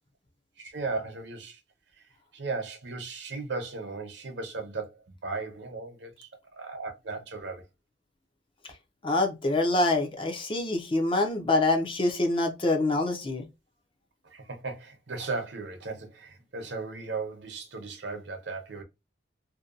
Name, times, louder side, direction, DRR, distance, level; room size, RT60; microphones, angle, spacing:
voice 1, 0.6-1.6 2.3-7.6 14.2-18.8, right 3 dB, 65° right, 0.7 m, -36 dB
voice 2, 9.0-13.5, left 2 dB, 25° left, 0.5 m, -25 dB
2.7 x 2.2 x 2.4 m
head